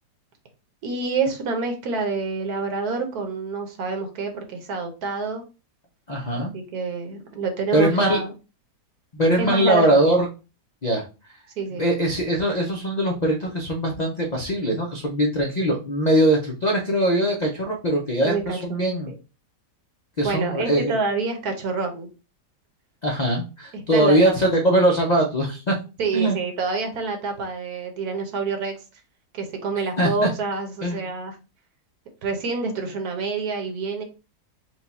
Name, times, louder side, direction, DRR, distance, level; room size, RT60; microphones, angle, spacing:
voice 1, 0.8-5.4 6.3-8.3 9.4-10.1 11.6-11.8 18.2-19.1 20.2-22.1 23.7-24.5 26.0-28.7 29.3-31.4 32.2-34.0, right 4 dB, 65° right, 4 dB, 1.4 m, -27 dB
voice 2, 6.1-6.5 7.7-8.2 9.1-10.3 10.8-11.0 11.8-19.1 20.2-21.0 23.0-25.7 26.1-26.4 30.0-30.3 30.8-31.0, right 1 dB, 70° left, 1 dB, 0.4 m, -21 dB
4.5 x 2.3 x 4.1 m, 0.31 s
omnidirectional pair, 1.8 m